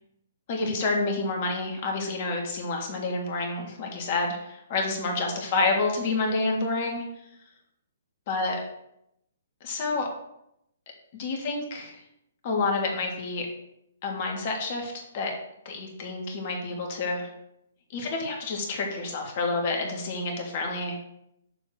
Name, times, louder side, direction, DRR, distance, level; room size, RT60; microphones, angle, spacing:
voice 1, 0.5-7.0 8.3-8.6 9.6-10.1 11.1-12.0 12.4-13.5 14.0-15.3 15.7-17.3 17.9-20.9, left 3 dB, 40° left, 1 dB, 1.8 m, -29 dB
6.9 x 3.5 x 6.3 m, 0.79 s
figure-of-eight pair, 125°, 0 cm